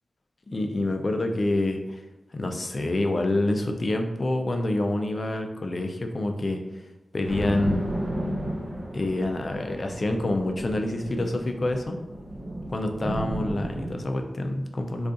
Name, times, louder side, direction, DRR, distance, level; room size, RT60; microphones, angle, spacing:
voice 1, 0.5-2.0 2.3-6.6 7.1-7.9 8.9-12.0 12.7-15.1, left 2 dB, 45° left, 4 dB, 0.4 m, -27 dB
sound 1, 7.2-13.9, right 1 dB, 50° right, 1.1 m, -33 dB
2.5 x 2.4 x 3.6 m, 0.95 s
wide cardioid pair, 100°, 0 cm